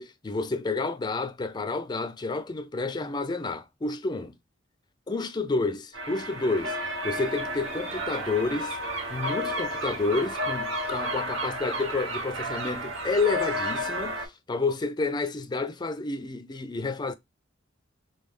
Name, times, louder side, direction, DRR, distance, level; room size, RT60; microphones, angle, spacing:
voice 1, 0.0-4.4 5.1-8.8 9.1-17.1, left 3 dB, 20° left, 0.4 m, -30 dB
sound 1, 5.9-14.3, equal, 80° right, 1.0 m, -32 dB
3.3 x 2.2 x 3.5 m
head